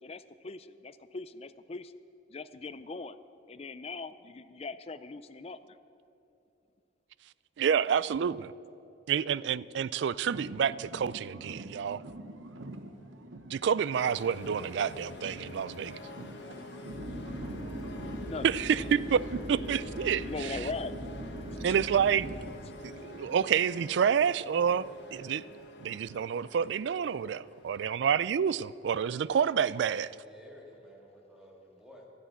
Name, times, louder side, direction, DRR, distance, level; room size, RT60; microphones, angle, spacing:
voice 1, 0.0-1.9 2.3-3.2 3.5-5.8 18.2-18.4 18.9-19.0 20.1-21.0 21.7-21.8, left 3 dB, 30° left, 0.4 m, -40 dB
voice 2, 7.6-8.5 9.1-12.0 13.5-16.0 18.4-20.6 21.6-22.3 22.8-25.4 25.8-30.1, right 7 dB, 65° right, 0.3 m, -28 dB
sound 1, 10.2-14.1 14.4-18.3, right 1 dB, 90° right, 1.0 m, -46 dB
sound 2, 13.9-29.1, left 2 dB, 60° left, 1.5 m, -47 dB
sound 3, 16.9-22.5, equal, 40° right, 1.6 m, -40 dB
voice 3, 29.8-32.0, equal, 5° right, 2.3 m, -54 dB
12.5 x 10.0 x 8.2 m
head